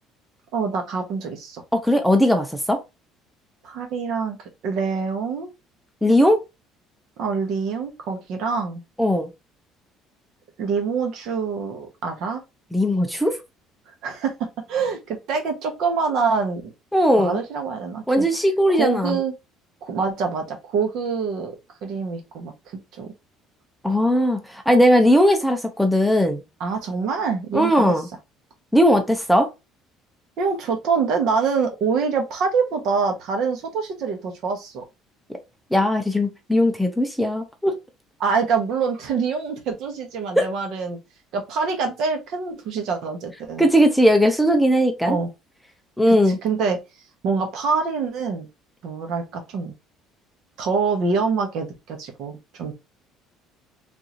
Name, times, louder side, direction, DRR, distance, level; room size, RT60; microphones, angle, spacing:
voice 1, 0.5-1.6 3.6-4.4 4.6-5.5 7.2-8.8 10.6-12.4 14.0-14.3 14.7-16.7 17.2-18.3 18.7-19.3 19.8-21.5 21.8-22.5 22.9-23.1 26.6-28.0 30.4-34.8 38.2-41.0 41.3-43.7 45.1-45.3 46.1-46.8 47.2-48.5 48.8-49.7 50.6-52.7, right 5 dB, 60° right, 1.1 m, -25 dB
voice 2, 1.7-2.8 6.0-6.4 9.0-9.3 12.7-13.4 16.9-17.4 18.1-19.2 23.8-26.4 27.5-28.1 28.7-29.5 35.7-37.8 40.4-40.5 43.6-45.2 46.0-46.4, equal, ahead, 0.6 m, -18 dB
3.7 x 2.6 x 2.9 m
cardioid pair, 145°, 0 cm